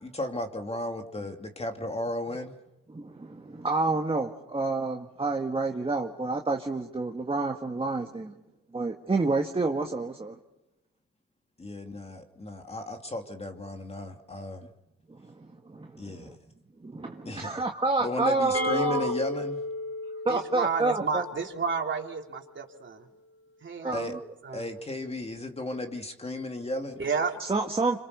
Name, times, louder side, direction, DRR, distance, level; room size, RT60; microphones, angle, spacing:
voice 1, 0.0-2.5 11.6-14.7 16.0-16.4 17.2-17.5 18.0-19.6 23.9-24.2 24.5-27.0, left 1 dB, 20° left, 4 dB, 2.7 m, -34 dB
voice 2, 2.9-8.3 8.7-10.4 15.1-16.4 16.8-19.1 20.3-21.2 23.8-24.2 27.4-28.0, right 3 dB, 20° right, 3 dB, 1.8 m, -29 dB
sound 1, 18.5-22.3, left 2 dB, 55° left, 7.6 m, -34 dB
voice 3, 20.3-23.0 23.6-24.0 24.4-24.7 27.0-27.4, right 5 dB, 40° right, 2 dB, 3.6 m, -31 dB
26.5 x 26.0 x 6.8 m, 0.93 s
cardioid pair, 90°, 30 cm